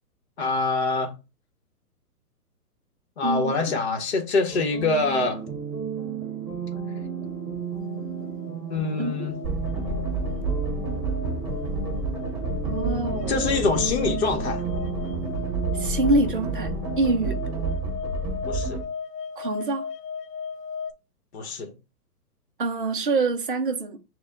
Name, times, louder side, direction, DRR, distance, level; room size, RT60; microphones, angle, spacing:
voice 1, 0.4-1.1 3.2-5.5 8.7-9.3 13.3-14.6 18.5-18.8 21.3-21.7, left 4 dB, 45° left, 0.9 m, -25 dB
voice 2, 3.2-3.5 9.0-9.1 12.6-13.5 15.7-17.4 19.4-19.9 22.6-24.0, right 2 dB, 35° right, 0.4 m, -25 dB
sound 1, 4.5-17.7, right 6 dB, 5° left, 2.3 m, -34 dB
sound 2, 7.6-20.9, left 6 dB, 85° left, 0.6 m, -37 dB
sound 3, 9.4-18.8, right 3 dB, 20° right, 2.0 m, -30 dB
6.5 x 2.2 x 3.5 m
hypercardioid pair, 170°, 47 cm